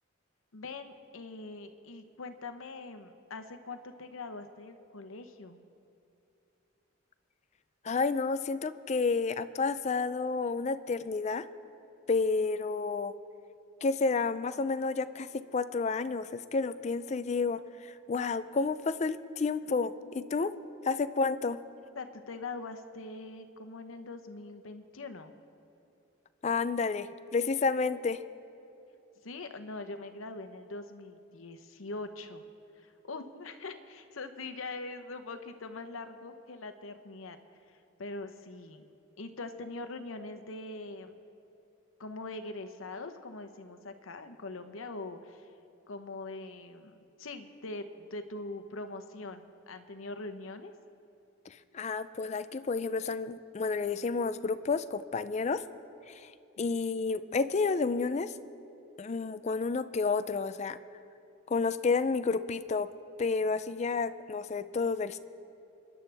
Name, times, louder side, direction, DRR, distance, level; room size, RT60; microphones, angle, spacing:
voice 1, 0.5-5.6 22.0-25.3 29.2-32.4 32.8-37.4 37.7-38.9 39.2-41.2 42.0-45.5 45.9-50.7 56.6-56.7, left 3 dB, 80° left, 8 dB, 0.9 m, -42 dB
voice 2, 7.8-11.5 12.1-13.1 13.8-20.6 20.8-21.6 26.4-28.2 51.5-55.6 56.1-56.3 56.6-58.3 59.0-60.8 61.5-62.9 63.2-65.2, left 4 dB, 35° left, 13 dB, 0.4 m, -30 dB
27.5 x 10.5 x 3.4 m, 2.8 s
head